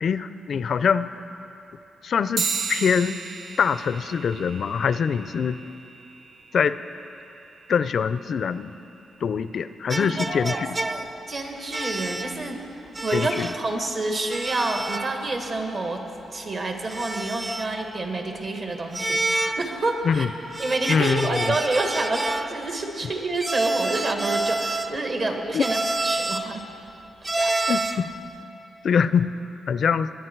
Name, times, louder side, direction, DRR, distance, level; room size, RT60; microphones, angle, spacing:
voice 1, 0.0-1.1 2.0-3.2 3.6-5.6 6.5-6.8 7.7-8.7 9.2-10.8 13.1-13.5 20.0-20.3 20.9-21.5 25.2-25.3 25.5-25.6 27.7-28.1 28.8-29.3 29.7-30.1, left 6 dB, 65° left, 14 dB, 0.4 m, -23 dB
sound 1, 2.4-12.2, right 5 dB, 70° right, 0.9 m, -37 dB
sound 2, 9.9-11.2 11.7-12.4 13.0-13.7 14.3-15.2 15.5-15.6 16.9-17.9 18.9-19.8 20.5-22.6 23.4-25.1 25.6-26.5 27.2-28.1, right 2 dB, 20° right, 0.4 m, -28 dB
voice 2, 10.0-12.6 13.0-16.0 16.3-20.3 20.6-26.6 27.4-27.5, right 2 dB, 55° right, 3 dB, 1.8 m, -28 dB
20.5 x 10.0 x 4.6 m, 2.9 s
cardioid pair, 95°, 0 cm